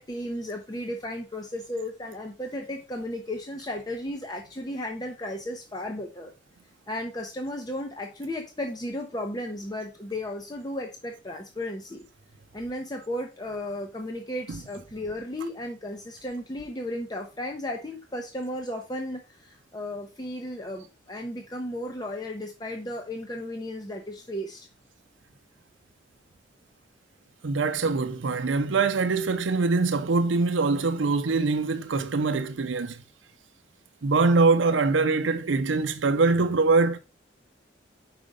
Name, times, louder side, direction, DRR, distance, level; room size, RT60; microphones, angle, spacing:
voice 1, 0.0-6.3 6.9-12.0 12.5-24.7, left 1 dB, 20° left, 0.7 m, -34 dB
voice 2, 27.4-33.0 34.0-37.0, right 3 dB, 85° right, 0.6 m, -23 dB
5.1 x 5.0 x 5.1 m
head